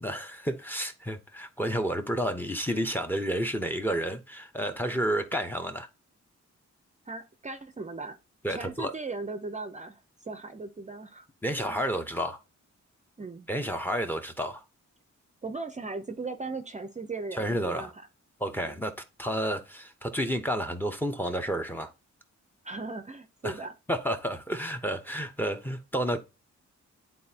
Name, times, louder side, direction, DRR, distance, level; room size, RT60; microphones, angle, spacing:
voice 1, 0.0-5.9 8.4-8.9 11.4-12.4 13.5-14.6 17.3-17.9 18.4-18.9 19.2-21.9 23.4-23.5 23.9-26.2, equal, 5° left, 0.8 m, -30 dB
voice 2, 7.1-8.2 8.5-11.3 11.6-11.8 13.2-13.5 15.4-18.0 18.6-18.8 22.6-23.7, right 3 dB, 25° right, 0.6 m, -38 dB
10.5 x 4.1 x 2.8 m
wide cardioid pair, 155°, 30 cm